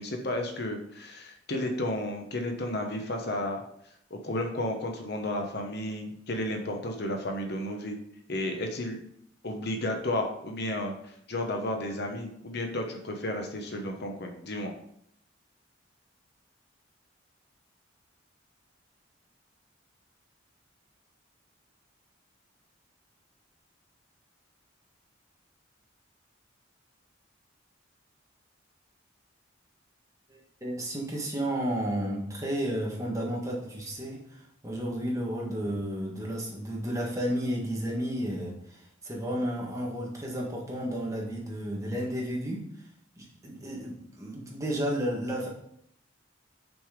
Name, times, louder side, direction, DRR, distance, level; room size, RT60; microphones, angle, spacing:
voice 1, 0.0-3.6 4.1-8.0 8.3-9.0 9.4-14.7, left 1 dB, 55° left, 3 dB, 1.1 m, -32 dB
voice 2, 30.3-42.7 43.2-45.5, equal, 15° right, -2 dB, 1.6 m, -32 dB
6.2 x 5.5 x 5.0 m, 0.70 s
head